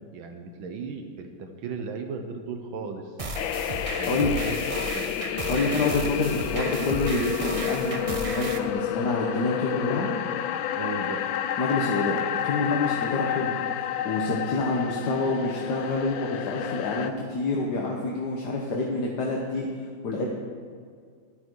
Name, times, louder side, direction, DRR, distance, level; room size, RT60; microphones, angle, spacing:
voice 1, 0.1-3.1 3.9-4.6 4.9-5.1 10.8-11.3, right 4 dB, 80° right, 5 dB, 1.8 m, -36 dB
sound 1, 3.2-8.6, right 2 dB, 40° right, 0.4 m, -34 dB
sound 2, 3.4-17.1, left 10 dB, 85° left, 1.4 m, -30 dB
voice 2, 5.5-10.1 11.6-13.5 14.0-19.7 20.0-20.3, left 3 dB, 55° left, -1 dB, 1.7 m, -27 dB
14.0 x 12.0 x 4.7 m, 2.1 s
omnidirectional pair, 2.2 m